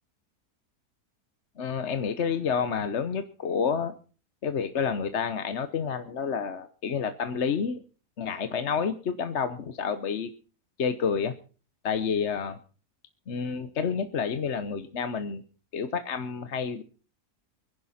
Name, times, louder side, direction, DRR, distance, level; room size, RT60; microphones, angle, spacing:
voice 1, 1.6-3.9 4.4-7.8 8.2-10.3 10.8-11.3 11.8-12.6 13.3-15.4 15.7-16.8, left 6 dB, 50° left, 10 dB, 1.1 m, -29 dB
24.0 x 11.0 x 4.2 m, 0.38 s
omnidirectional pair, 1.7 m